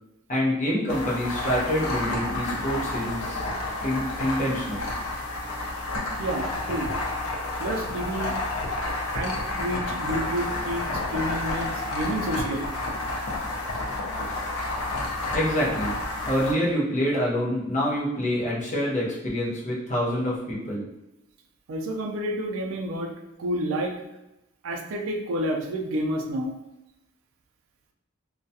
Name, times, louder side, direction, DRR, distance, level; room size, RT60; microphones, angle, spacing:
voice 1, 0.3-3.4 3.8-4.9 15.3-16.0 16.2-20.8, equal, 35° left, -5 dB, 0.6 m, -26 dB
sound 1, 0.9-16.5, left 2 dB, 80° left, 0.5 m, -30 dB
voice 2, 6.2-6.9 7.6-8.4 9.1-12.7 21.7-23.1 23.4-23.9 24.6-26.5, right 1 dB, 70° right, 2 dB, 0.4 m, -29 dB
2.3 x 2.1 x 2.6 m, 0.94 s
head